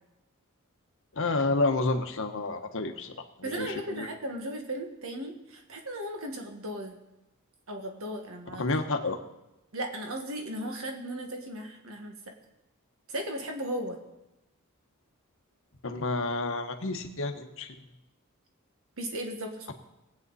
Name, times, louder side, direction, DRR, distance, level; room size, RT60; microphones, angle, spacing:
voice 1, 1.1-3.2 3.5-4.1 8.6-9.2 15.8-17.7, left 3 dB, 60° left, 6 dB, 1.1 m, -29 dB
voice 2, 3.4-7.0 7.7-8.7 9.7-12.2 13.1-14.0 19.0-19.7, right 1 dB, 65° right, 3 dB, 1.8 m, -36 dB
20.0 x 8.6 x 4.2 m, 0.93 s
head